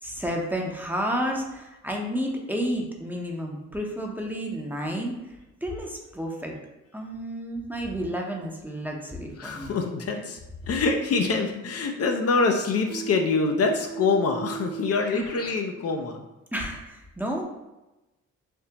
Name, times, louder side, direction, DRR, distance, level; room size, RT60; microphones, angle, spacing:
voice 1, 0.0-5.2 5.6-6.5 6.9-9.7 15.1-15.3 16.5-17.4, equal, 5° right, 0 dB, 0.6 m, -31 dB
voice 2, 9.4-10.4 10.7-16.3, left 4 dB, 50° left, 3 dB, 0.5 m, -25 dB
Keyboard (musical), 12.9-15.6, right 8 dB, 75° left, 1.0 m, -36 dB
3.5 x 2.7 x 2.8 m, 1.0 s
cardioid pair, 75°, 30 cm